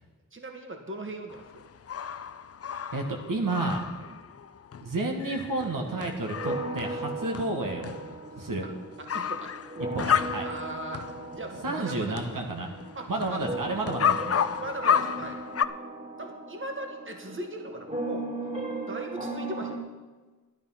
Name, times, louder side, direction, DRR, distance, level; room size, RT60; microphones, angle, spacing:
voice 1, 0.3-1.7 4.0-4.2 8.6-8.7 9.0-9.5 10.4-11.0 11.3-12.2 12.9-13.4 14.5-15.4 16.2-18.3 18.9-19.8, right 2 dB, 35° right, 3 dB, 1.8 m, -38 dB
sound 1, 1.3-11.5 11.8-15.6, left 8 dB, 45° left, 0.5 m, -32 dB
voice 2, 2.9-3.9 4.8-8.0 8.3-8.7 9.9-10.5 11.6-12.7 13.1-14.4, right 2 dB, 70° right, 2 dB, 1.7 m, -31 dB
sound 2, 5.6-19.8, right 2 dB, 20° right, 2.2 m, -38 dB
12.0 x 11.0 x 5.8 m, 1.3 s
wide cardioid pair, 95°, 34 cm